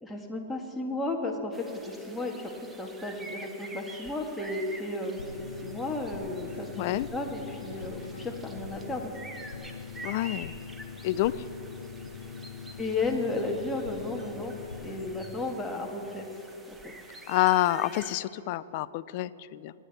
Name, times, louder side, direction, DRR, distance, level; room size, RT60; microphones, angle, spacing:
voice 1, 0.0-9.1 12.8-14.5 14.8-16.3 16.7-16.8, left 2 dB, 5° left, 0 dB, 1.9 m, -34 dB
sound 1, 1.5-18.2, right 2 dB, 10° right, 1.1 m, -48 dB
sound 2, 5.2-15.1, left 6 dB, 75° left, 1.1 m, -42 dB
voice 2, 6.8-7.1 10.0-10.5 11.0-11.3 17.3-19.7, left 16 dB, 50° left, 18 dB, 0.4 m, -27 dB
26.0 x 9.7 x 4.3 m, 3.0 s
figure-of-eight pair, 105°, 0 cm